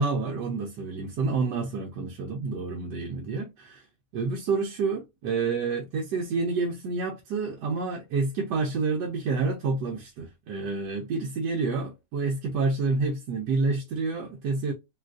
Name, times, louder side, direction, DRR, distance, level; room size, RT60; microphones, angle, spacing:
voice 1, 0.0-3.8 4.1-14.7, right 4 dB, 80° right, 1.2 m, -28 dB
3.7 x 2.4 x 2.3 m
omnidirectional pair, 1.8 m